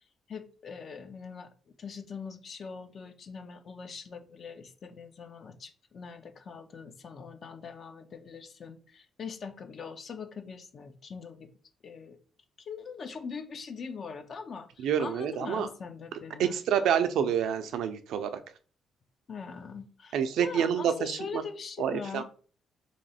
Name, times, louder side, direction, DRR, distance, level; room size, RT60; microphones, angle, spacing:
voice 1, 0.3-11.5 11.8-12.2 12.6-16.6 19.3-22.2, left 5 dB, 50° left, 8 dB, 0.6 m, -42 dB
voice 2, 14.8-15.7 16.4-18.3 20.1-21.4 21.8-22.2, right 8 dB, 80° right, 9 dB, 0.4 m, -28 dB
3.0 x 2.8 x 4.1 m, 0.41 s
cardioid pair, 90°, 0 cm